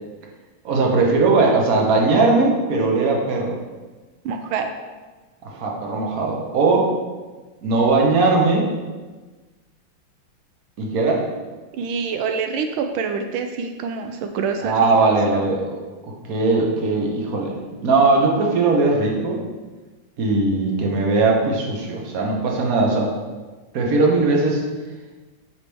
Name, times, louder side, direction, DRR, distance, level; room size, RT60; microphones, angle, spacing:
voice 1, 0.6-3.5 5.4-6.9 7.6-8.7 10.8-11.2 14.6-15.7 16.0-19.4 20.2-23.1 23.7-24.6, right 3 dB, 50° right, -1 dB, 1.4 m, -19 dB
voice 2, 4.2-4.7 11.7-15.4, right 5 dB, 85° right, 5 dB, 1.4 m, -26 dB
8.1 x 5.2 x 3.4 m, 1.3 s
omnidirectional pair, 2.2 m